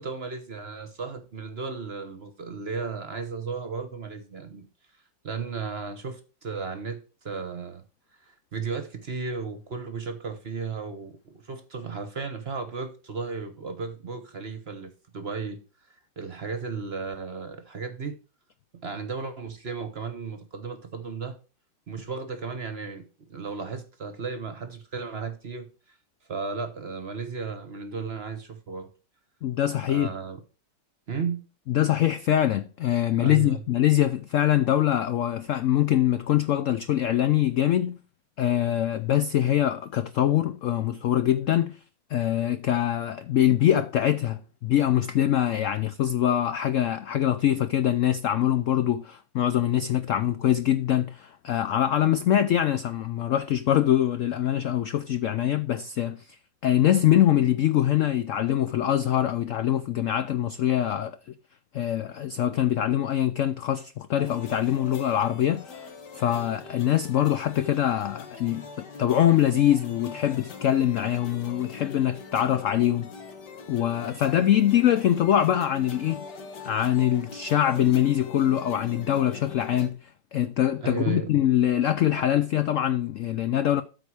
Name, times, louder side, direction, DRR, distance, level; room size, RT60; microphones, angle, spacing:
voice 1, 0.0-4.7 5.2-7.8 8.2-15.6 16.2-18.2 18.8-21.4 21.9-25.7 26.3-28.9 29.9-30.4 31.1-31.4 33.2-33.6 74.0-74.2 80.8-81.3 82.1-82.2, right 5 dB, 45° right, 1.0 m, -34 dB
voice 2, 29.4-30.1 31.7-38.0 38.4-41.8 42.1-56.3 56.6-61.2 61.7-73.1 73.7-76.2 76.6-83.8, left 11 dB, 85° left, 0.6 m, -23 dB
sound 1, 64.2-79.9, left 5 dB, 65° left, 1.9 m, -43 dB
13.0 x 4.5 x 4.7 m
omnidirectional pair, 2.0 m